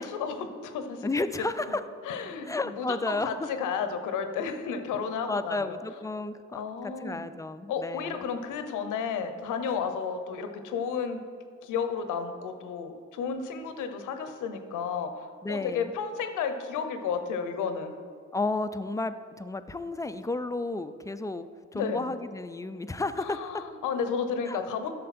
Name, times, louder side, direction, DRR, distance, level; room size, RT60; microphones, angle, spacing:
voice 1, 0.0-1.1 2.1-2.5 2.8-5.8 6.5-7.2 7.7-11.2 11.6-17.9 21.7-22.1 23.2-24.9, left 6 dB, 90° left, 8 dB, 0.9 m, -32 dB
voice 2, 1.0-1.8 2.4-3.3 5.3-8.2 15.4-15.9 18.3-23.7 24.5-24.6, left 2 dB, 10° left, 11 dB, 0.4 m, -32 dB
11.5 x 6.6 x 4.3 m, 2.2 s
cardioid pair, 90°, 30 cm